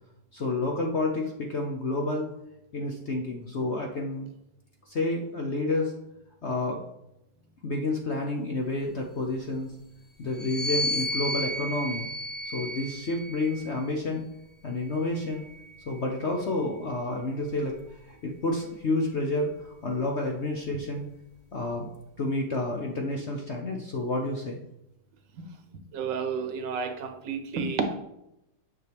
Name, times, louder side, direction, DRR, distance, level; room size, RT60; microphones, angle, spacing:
voice 1, 0.3-2.3 2.7-4.3 4.9-5.9 6.4-6.8 7.6-9.7 10.2-12.1 12.4-14.2 14.6-15.5 15.9-21.1 21.5-21.9 22.2-24.6, left 2 dB, 55° left, 1 dB, 0.8 m, -30 dB
sound 1, 10.3-13.9 14.8-16.4, left 1 dB, 80° left, 0.3 m, -34 dB
voice 2, 25.9-28.0, right 5 dB, 70° right, 7 dB, 1.5 m, -30 dB
9.3 x 5.9 x 3.4 m, 0.85 s
omnidirectional pair, 2.1 m